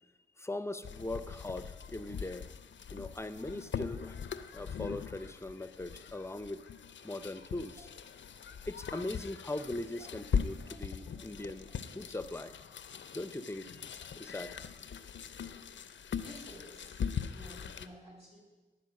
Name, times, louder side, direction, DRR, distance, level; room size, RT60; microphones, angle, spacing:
voice 1, 0.4-2.5 2.9-4.2 4.5-6.6 7.0-7.9 8.7-11.7 11.9-12.6 13.1-14.6, left 2 dB, 15° left, 12 dB, 0.5 m, -40 dB
sound 1, 0.8-17.9, left 7 dB, 65° left, 0.5 m, -41 dB
voice 2, 16.2-17.0 17.3-18.4, equal, 30° right, -1 dB, 3.1 m, -53 dB
10.5 x 4.3 x 6.4 m, 1.2 s
cardioid pair, 50°, 20 cm